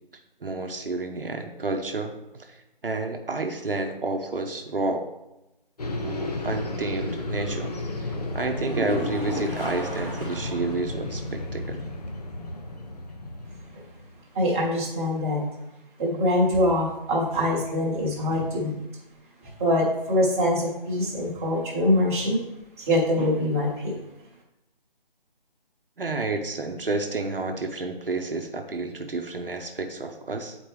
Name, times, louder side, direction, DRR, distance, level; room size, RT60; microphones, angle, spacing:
voice 1, 0.4-2.6 2.8-5.1 6.0-7.7 8.0-8.1 8.3-11.8 26.0-30.6, right 3 dB, 70° right, 4 dB, 0.9 m, -30 dB
sound 1, 5.8-14.1, left 2 dB, 45° left, 0.8 m, -33 dB
sound 2, 8.5-10.8 11.1-11.2 11.7-11.8 15.6-15.7, equal, 10° left, 0.7 m, -34 dB
voice 2, 14.3-15.4 16.0-18.7 19.6-22.4 22.8-24.0, left 1 dB, 15° right, -6 dB, 1.1 m, -24 dB
8.9 x 4.4 x 3.2 m, 0.93 s
figure-of-eight pair, 155°, 29 cm